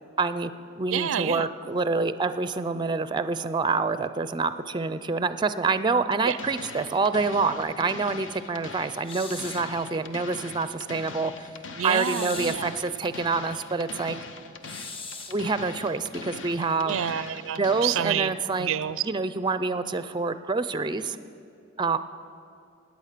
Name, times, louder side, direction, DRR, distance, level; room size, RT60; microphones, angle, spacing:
voice 1, 0.2-0.5 0.8-11.5 11.8-14.2 15.3-17.1 17.6-18.7 19.0-21.2 21.8-22.0, right 4 dB, 25° right, 13 dB, 0.4 m, -27 dB
voice 2, 0.9-1.4 6.2-6.4 11.8-12.7 16.9-18.3 18.6-19.0, right 9 dB, 85° right, 16 dB, 0.4 m, -28 dB
sound 1, 6.1-18.1, left 4 dB, 65° left, 0.9 m, -42 dB
sound 2, 9.0-9.7 11.9-12.7 14.6-15.4, left 3 dB, 25° left, 0.9 m, -39 dB
18.0 x 9.3 x 6.7 m, 2.6 s
head